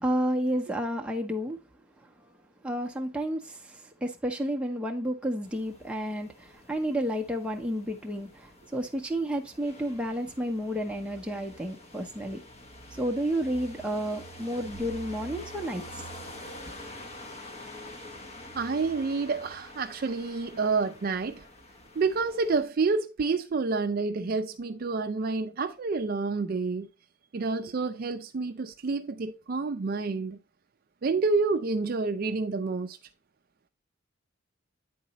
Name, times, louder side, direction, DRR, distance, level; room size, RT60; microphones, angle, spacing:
voice 1, 0.0-1.6 2.0-2.1 2.6-12.4 12.9-16.1, equal, 5° right, 0.7 m, -31 dB
sound 1, 5.4-22.6, left 1 dB, 30° left, 0.9 m, -46 dB
voice 2, 18.6-21.5 22.0-26.9 27.3-30.4 31.0-33.0, right 4 dB, 45° right, 0.4 m, -28 dB
9.4 x 4.0 x 2.8 m
head